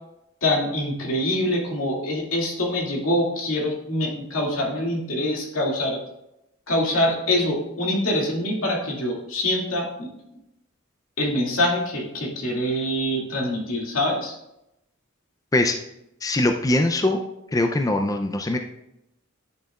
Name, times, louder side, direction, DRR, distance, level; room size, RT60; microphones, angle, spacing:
voice 1, 0.4-6.0 6.7-10.1 11.2-14.4, left 1 dB, 90° left, -2 dB, 2.2 m, -24 dB
voice 2, 16.2-17.2 17.5-18.6, left 1 dB, 15° left, 5 dB, 0.4 m, -22 dB
10.5 x 6.5 x 2.4 m, 0.84 s
head